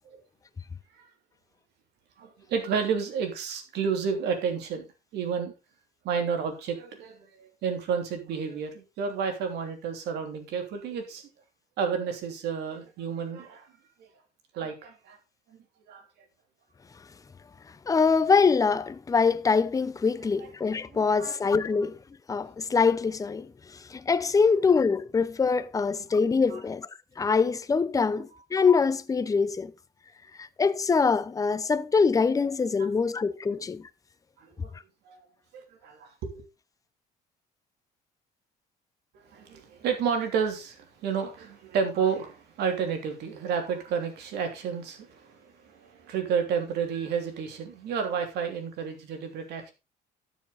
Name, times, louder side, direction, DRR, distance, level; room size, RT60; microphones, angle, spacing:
voice 1, 2.2-4.9 5.1-5.5 6.0-11.3 11.8-13.7 14.0-14.1 14.5-15.2 15.5-16.0 20.4-20.5 20.9-21.4 26.5-26.6 28.3-28.4 32.8-32.9 34.4-34.7 35.0-35.2 35.5-36.4 39.1-49.7, right 6 dB, 80° right, 3.2 m, -31 dB
voice 2, 17.9-21.9 22.3-23.5 23.9-26.9 27.2-29.7 30.4-33.8, left 5 dB, 20° left, 0.7 m, -24 dB
12.5 x 7.2 x 4.0 m
cardioid pair, 110°, 17 cm